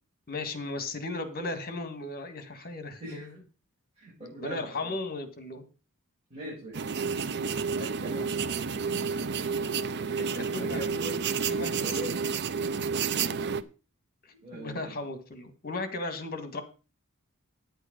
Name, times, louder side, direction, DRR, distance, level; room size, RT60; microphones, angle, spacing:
voice 1, 0.3-3.4 4.3-5.6 9.1-9.2 10.3-10.8 11.5-11.9 14.2-16.6, left 2 dB, 45° left, 9 dB, 1.8 m, -36 dB
voice 2, 3.0-3.3 4.0-4.9 6.3-6.9 7.7-8.3 10.5-11.2 11.5-12.1 12.9-13.6 14.4-14.9, equal, 30° right, -7 dB, 6.0 m, -41 dB
sound 1, 6.7-13.6, right 5 dB, 50° right, 0.6 m, -30 dB
9.6 x 8.1 x 5.2 m, 0.34 s
head